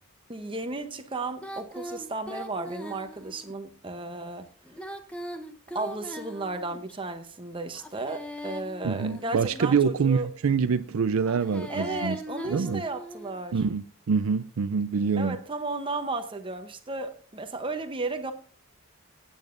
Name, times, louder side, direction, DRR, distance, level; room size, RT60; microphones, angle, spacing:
voice 1, 0.3-4.5 5.7-10.3 11.7-13.6 15.2-18.3, right 3 dB, 25° right, 0.8 m, -34 dB
Female singing, 1.4-3.5 4.6-7.0 7.7-9.9 11.2-13.4, equal, 5° left, 0.8 m, -40 dB
voice 2, 8.8-12.2 12.5-12.8 13.5-15.4, right 5 dB, 80° right, 0.4 m, -25 dB
19.5 x 8.7 x 2.5 m
head